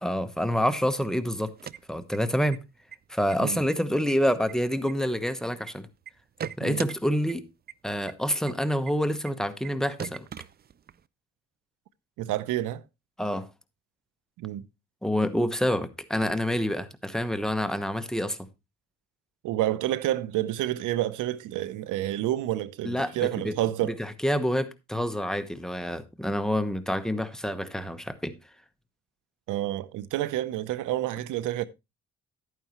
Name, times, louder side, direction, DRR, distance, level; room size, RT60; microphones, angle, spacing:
voice 1, 0.0-1.5 1.9-2.6 3.1-5.9 6.6-7.5 7.8-10.2 13.2-13.5 15.0-18.4 22.8-23.5 23.8-28.3, equal, ahead, 1.1 m, -27 dB
sound 1, 1.4-2.6 2.9-3.0 3.3-3.7 4.1-5.7 6.1-6.9 7.3-7.4 7.7-7.8 8.1-8.2 8.5-8.6 8.9-9.0 9.2-9.3 9.6-9.7 10.0-11.0, right 8 dB, 35° right, 0.4 m, -39 dB
voice 2, 12.2-12.8 14.4-14.6 19.4-24.0 29.5-31.7, right 14 dB, 85° right, 0.7 m, -29 dB
11.0 x 9.2 x 3.0 m
cardioid pair, 90°, 30 cm